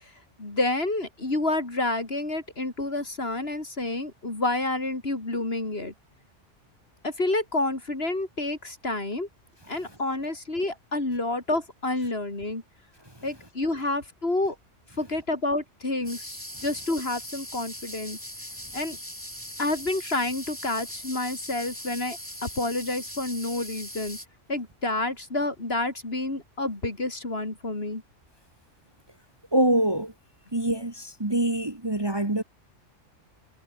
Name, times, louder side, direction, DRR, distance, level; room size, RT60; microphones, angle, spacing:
voice 1, 0.4-5.9 7.0-9.3 9.7-12.6 13.2-14.6 15.0-18.2 18.7-19.0 19.6-24.2 24.5-28.0, left 2 dB, 55° left, 4.2 m, -29 dB
sound 1, 16.0-24.2, equal, 10° left, 7.0 m, -40 dB
voice 2, 29.5-30.1 30.5-32.4, right 1 dB, 20° right, 1.8 m, -24 dB
omnidirectional pair, 1.3 m